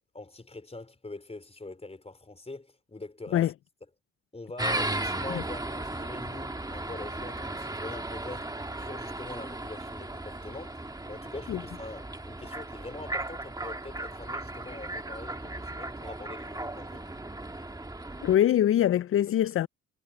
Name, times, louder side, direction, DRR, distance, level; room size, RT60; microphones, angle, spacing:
voice 1, 0.1-3.5 4.3-8.5 8.8-10.8 11.1-17.1, left 2 dB, 20° left, 4.6 m, -43 dB
sound 1, 4.6-18.4, right 2 dB, 10° right, 1.7 m, -36 dB
voice 2, 18.2-19.7, left 11 dB, 45° left, 0.4 m, -23 dB
cardioid pair, 80°, 33 cm